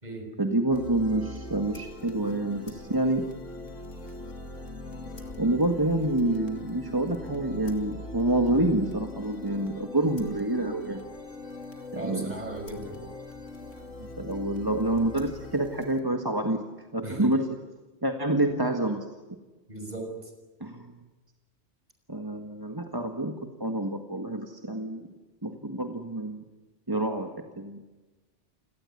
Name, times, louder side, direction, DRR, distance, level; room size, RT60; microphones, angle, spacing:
voice 1, 0.4-3.2 5.4-11.0 11.9-12.3 14.0-16.6 16.9-17.5 18.0-19.1 20.6-21.0 22.1-25.1 25.4-26.4 26.9-27.8, right 1 dB, 20° right, 4 dB, 1.7 m, -27 dB
sound 1, 0.7-16.0, left 2 dB, 90° left, 3.2 m, -41 dB
voice 2, 12.0-13.0 17.0-17.3 19.7-20.1, right 2 dB, 35° right, 4 dB, 6.1 m, -37 dB
29.0 x 18.5 x 9.8 m, 1.2 s
omnidirectional pair, 1.2 m